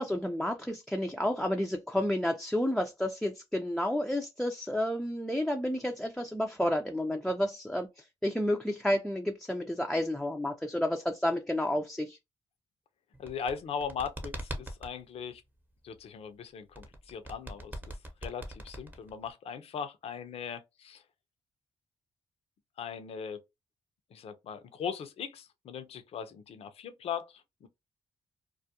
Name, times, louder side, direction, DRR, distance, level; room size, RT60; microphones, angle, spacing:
voice 1, 0.0-7.9 8.2-12.2, left 1 dB, 5° left, 0.4 m, -30 dB
sound 1, 13.1-14.9 16.7-19.3, right 1 dB, 15° right, 0.8 m, -41 dB
voice 2, 13.2-15.4 15.8-21.0 22.8-23.4 24.1-27.7, left 7 dB, 65° left, 0.5 m, -39 dB
2.3 x 2.1 x 2.8 m
supercardioid pair, 65°, 11 cm